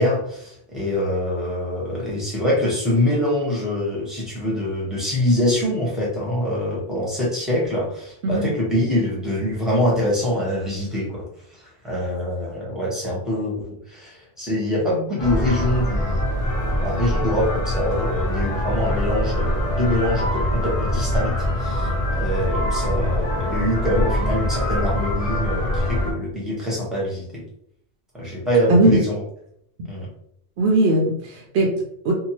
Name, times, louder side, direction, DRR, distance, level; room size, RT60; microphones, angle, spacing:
voice 1, 0.0-11.2 11.6-16.2 16.8-21.3 21.6-27.4 28.1-29.2 29.8-30.1, left 1 dB, ahead, -5 dB, 0.9 m, -24 dB
sound 1, 15.2-26.1, left 1 dB, 45° left, 0.5 m, -23 dB
voice 2, 30.6-32.1, right 2 dB, 75° right, 0 dB, 0.8 m, -19 dB
2.8 x 2.1 x 2.8 m, 0.68 s
omnidirectional pair, 1.1 m